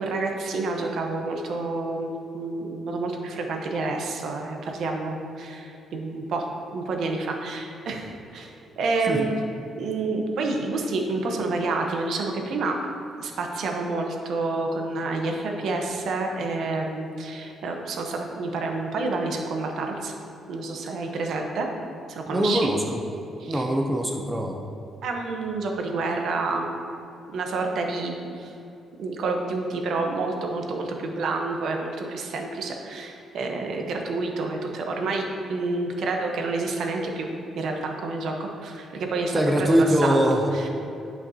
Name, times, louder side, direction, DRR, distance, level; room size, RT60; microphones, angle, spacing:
voice 1, 0.0-9.3 9.8-12.8 13.2-20.1 20.5-21.7 22.1-22.7 23.4-23.6 25.0-26.8 27.3-28.5 29.0-37.3 37.5-40.2 40.5-40.7, right 3 dB, 65° right, 2 dB, 0.9 m, -29 dB
voice 2, 22.3-23.0 23.5-24.6 39.3-40.5, equal, 10° right, 1 dB, 0.6 m, -22 dB
10.5 x 5.9 x 2.8 m, 2.8 s
cardioid pair, 130°, 0 cm